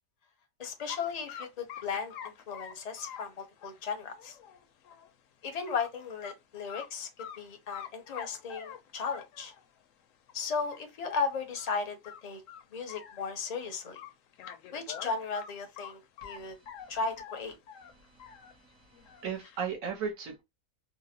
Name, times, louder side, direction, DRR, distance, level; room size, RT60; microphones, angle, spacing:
voice 1, 0.6-4.4 5.4-9.5 10.3-12.4 12.7-14.0 14.7-16.6 16.9-17.6, left 5 dB, 40° left, 0.6 m, -36 dB
sound 1, 0.9-1.0 1.3-5.1 5.5-5.9 6.2-6.3 6.7-7.4 7.7-9.7 10.3-10.4 10.7-10.8 11.1-11.2 11.6-11.8 12.0-13.6 14.0-16.4 16.7-18.5 18.9-19.6, left 8 dB, 70° left, 0.9 m, -46 dB
voice 2, 18.2-20.4, right 6 dB, 65° right, 1.4 m, -37 dB
3.8 x 2.0 x 2.8 m
omnidirectional pair, 1.5 m